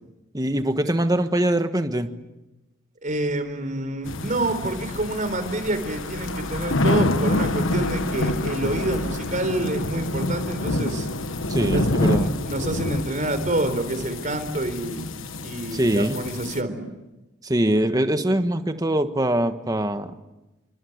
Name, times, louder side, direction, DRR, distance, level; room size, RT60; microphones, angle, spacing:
voice 1, 0.3-2.1 11.5-12.3 15.7-16.2 17.4-20.1, right 1 dB, 20° right, 8 dB, 1.5 m, -23 dB
voice 2, 3.0-11.1 11.7-15.0 15.4-16.8, right 1 dB, 40° right, 10 dB, 4.0 m, -27 dB
sound 1, 4.1-16.6, left 2 dB, 75° left, 1.3 m, -27 dB
29.0 x 25.0 x 8.1 m, 1.0 s
head